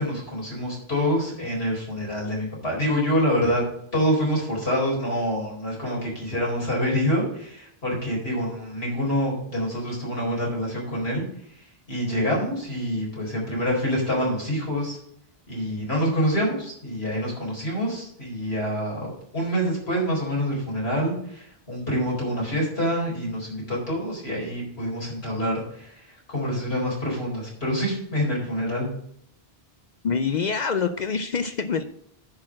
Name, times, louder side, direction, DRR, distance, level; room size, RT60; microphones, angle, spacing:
voice 1, 0.0-3.6 3.9-11.2 11.5-15.0 15.5-28.9, equal, 80° left, -4 dB, 4.5 m, -26 dB
voice 2, 30.0-31.8, left 5 dB, 55° left, 10 dB, 0.6 m, -25 dB
10.5 x 4.3 x 7.5 m, 0.70 s
omnidirectional pair, 1.0 m